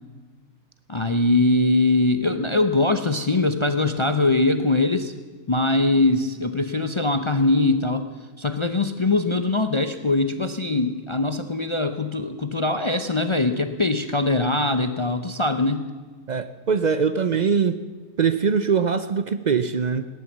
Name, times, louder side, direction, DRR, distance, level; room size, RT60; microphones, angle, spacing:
voice 1, 0.9-5.1 5.5-8.1 8.4-15.9, left 2 dB, 50° left, 9 dB, 0.3 m, -22 dB
voice 2, 16.3-17.8 18.2-20.0, right 6 dB, 65° right, 11 dB, 0.4 m, -22 dB
17.5 x 11.0 x 7.4 m, 1.5 s
omnidirectional pair, 1.5 m